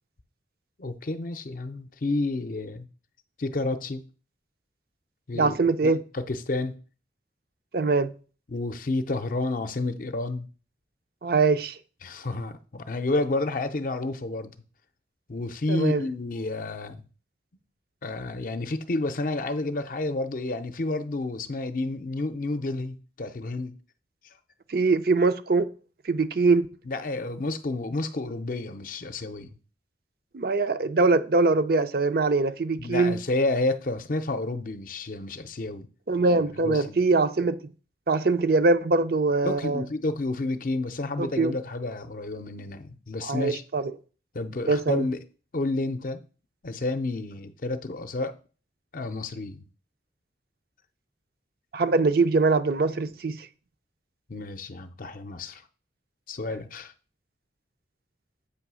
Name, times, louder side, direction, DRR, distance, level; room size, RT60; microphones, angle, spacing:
voice 1, 0.8-2.9 3.4-4.0 5.3-5.6 5.8-6.8 8.5-10.5 12.0-14.5 15.3-17.0 18.0-23.7 26.9-29.5 32.8-35.9 36.6-37.0 39.4-43.6 44.3-45.2 45.5-46.2 46.6-48.3 48.9-49.6 54.3-55.6 56.3-56.9, left 2 dB, 45° left, 0.6 m, -30 dB
voice 2, 5.3-6.0 7.7-8.1 11.2-11.8 15.7-16.0 24.7-25.7 26.0-26.7 30.3-33.2 36.1-37.6 38.1-39.8 41.2-41.6 43.2-43.9 44.7-45.0 51.7-53.4, right 3 dB, 55° right, 0.5 m, -23 dB
8.2 x 3.2 x 6.1 m
head